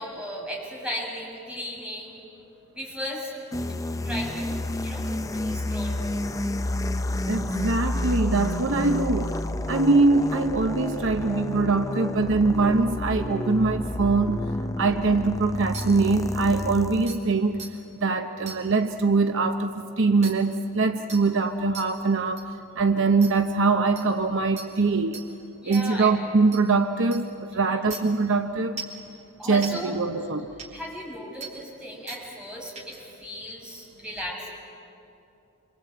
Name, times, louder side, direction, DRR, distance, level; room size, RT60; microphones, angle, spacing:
voice 1, 0.0-2.2 2.7-3.3 4.0-4.5 4.8-6.0 25.6-26.1 27.7-27.8 29.4-29.9 30.7-34.5, left 1 dB, 5° right, -3 dB, 7.0 m, -36 dB
sound 1, 3.5-17.2, left 1 dB, 15° left, 0.6 m, -30 dB
voice 2, 7.2-9.4 9.7-14.4 14.8-17.6 18.0-22.5 22.8-25.2 25.7-28.8 29.4-30.5, right 3 dB, 60° right, 7 dB, 0.9 m, -23 dB
sound 2, 15.7-15.8 16.6-16.7 17.1-17.2 17.6-17.7 18.5-18.6 20.2-20.3 21.1-21.2 21.7-21.8 22.4-22.5 23.2-23.3 24.0-24.1 24.6-24.7 25.1-25.2 25.7-25.8 26.5-26.6 27.1-27.2 27.9-28.0 28.8-29.0 29.6-29.7 30.6-30.7 31.4-31.5 32.1-32.2 32.8-33.0, right 5 dB, 35° right, 3.7 m, -37 dB
27.0 x 25.0 x 8.7 m, 2.7 s
head